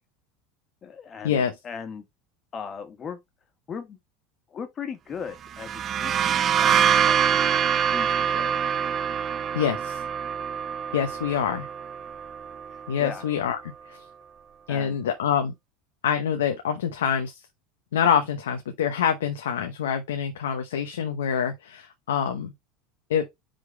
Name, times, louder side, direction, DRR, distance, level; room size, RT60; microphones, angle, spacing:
voice 1, 0.8-2.1 2.5-3.2 3.7-4.0 4.5-6.7 7.0-7.6 7.9-8.6 12.7-13.2 14.7-15.0, left 6 dB, 35° left, 1.7 m, -38 dB
sound 1, 5.5-13.0, right 8 dB, 35° right, 0.5 m, -25 dB
voice 2, 9.5-10.0 10.9-11.7 12.9-13.6 13.9-14.0 14.7-15.5 16.0-17.4 17.9-22.5 23.1-23.3, left 8 dB, 90° left, 0.9 m, -26 dB
5.1 x 3.8 x 4.8 m
hypercardioid pair, 100°, 0 cm